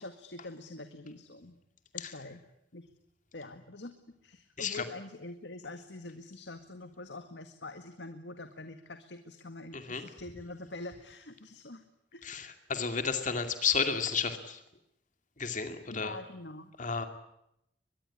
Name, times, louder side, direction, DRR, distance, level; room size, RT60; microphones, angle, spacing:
voice 1, 0.0-1.6 1.9-2.4 2.7-2.9 3.3-3.9 4.2-11.8 12.1-12.4 12.9-13.0 15.9-16.7, left 2 dB, 85° left, 8 dB, 1.9 m, -45 dB
voice 2, 9.7-10.0 12.2-14.6 15.4-16.2 16.8-17.1, left 6 dB, 45° left, 7 dB, 2.4 m, -32 dB
23.0 x 21.5 x 9.9 m, 0.80 s
head